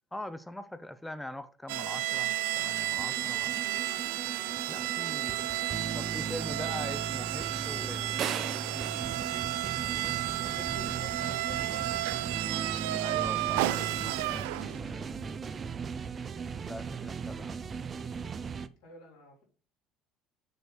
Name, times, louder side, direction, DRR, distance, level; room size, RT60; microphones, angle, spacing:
voice 1, 0.1-3.6 4.7-5.5 5.9-8.1 13.0-15.4 16.7-17.6, left 1 dB, 5° left, 0.6 m, -43 dB
sound 1, 1.7-14.9, right 16 dB, 85° right, 0.4 m, -32 dB
sound 2, 3.0-18.7, right 5 dB, 35° right, 0.5 m, -38 dB
sound 3, 8.2-10.3, right 8 dB, 50° right, 0.8 m, -38 dB
voice 2, 10.4-11.9 18.8-19.4, left 3 dB, 80° left, 3.8 m, -49 dB
7.0 x 3.3 x 6.1 m
supercardioid pair, 90°, 0 cm